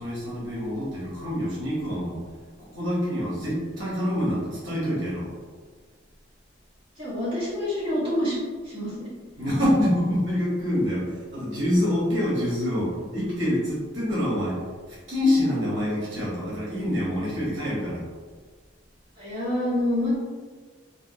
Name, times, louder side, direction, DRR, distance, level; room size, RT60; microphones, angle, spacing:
voice 1, 0.0-2.2 2.6-5.3 9.4-11.0 11.3-14.6 15.1-18.0, left 1 dB, 70° right, -7 dB, 1.1 m, -26 dB
voice 2, 7.0-8.4 8.6-9.1 19.2-20.2, left 1 dB, 30° right, -11 dB, 1.3 m, -27 dB
3.4 x 2.3 x 2.7 m, 1.5 s
head